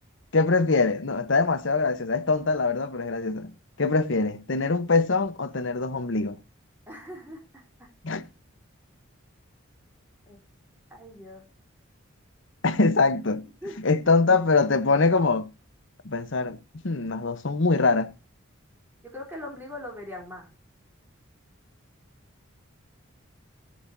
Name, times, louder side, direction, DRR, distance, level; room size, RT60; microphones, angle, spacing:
voice 1, 0.3-3.5 3.8-6.4 8.0-8.2 12.6-13.4 13.8-15.5 16.0-16.6 16.8-18.1, left 3 dB, 60° left, 0.9 m, -23 dB
voice 2, 6.9-7.9 10.3-10.4 10.9-11.4 13.4-13.9 19.0-20.5, left 1 dB, 10° right, 3.3 m, -41 dB
17.0 x 7.9 x 2.6 m
head